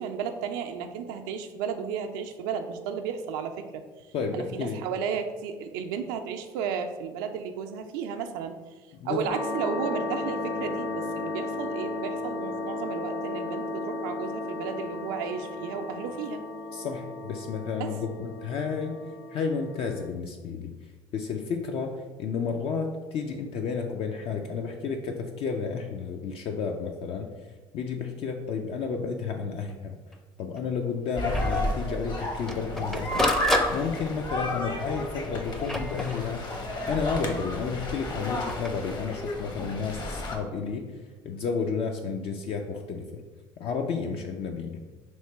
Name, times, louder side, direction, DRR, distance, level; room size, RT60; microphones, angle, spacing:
voice 1, 0.0-3.8 4.3-8.6 9.0-16.4 17.8-17.9, right 6 dB, 85° right, 5 dB, 0.4 m, -33 dB
voice 2, 4.1-4.8 8.9-9.2 16.7-19.0 19.3-20.7 21.1-27.3 27.7-30.0 30.4-33.3 33.7-36.5 36.9-40.9 41.2-43.2 43.6-44.8, left 5 dB, 60° left, 3 dB, 0.4 m, -31 dB
sound 1, 9.3-20.1, left 2 dB, 90° left, 0.7 m, -34 dB
Printer, 29.7-29.8 30.1-30.2 30.6-30.7 31.3-31.6 32.2-34.3 35.1-36.6 38.3-38.7, left 1 dB, 5° left, 0.5 m, -31 dB
sound 2, 31.2-40.4, left 1 dB, 40° left, 0.8 m, -31 dB
3.0 x 2.9 x 4.4 m, 1.3 s
supercardioid pair, 80°, 11 cm